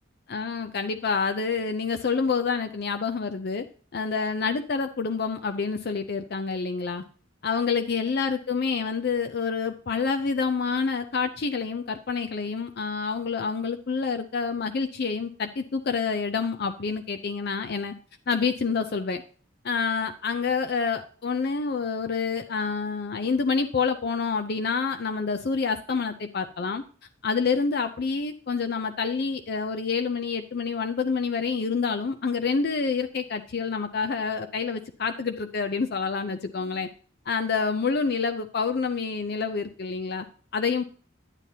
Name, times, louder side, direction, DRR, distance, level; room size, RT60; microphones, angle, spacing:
voice 1, 0.3-3.6 3.9-7.0 7.4-17.9 18.3-19.2 19.6-26.8 27.2-36.9 37.3-40.3 40.5-40.8, left 5 dB, 50° left, 7 dB, 0.5 m, -27 dB
9.9 x 9.0 x 2.7 m, 0.41 s
head